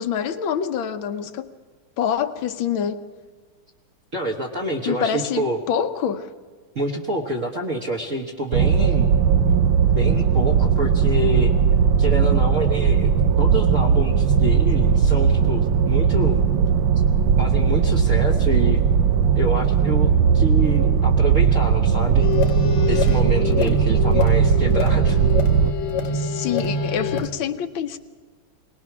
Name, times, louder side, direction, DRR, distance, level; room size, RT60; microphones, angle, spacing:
voice 1, 0.0-1.5 2.0-3.1 4.9-6.3 23.6-23.7 26.1-28.0, left 8 dB, 70° left, 1.6 m, -26 dB
voice 2, 4.1-5.6 6.7-9.1 9.9-11.5 12.0-13.1 13.4-16.4 17.4-18.8 19.3-22.3 22.9-25.2, right 1 dB, 40° right, 1.6 m, -27 dB
sound 1, 8.5-25.7, right 7 dB, 70° right, 1.5 m, -18 dB
sound 2, 22.2-27.3, left 3 dB, 90° left, 2.2 m, -25 dB
22.5 x 19.5 x 6.1 m
omnidirectional pair, 2.3 m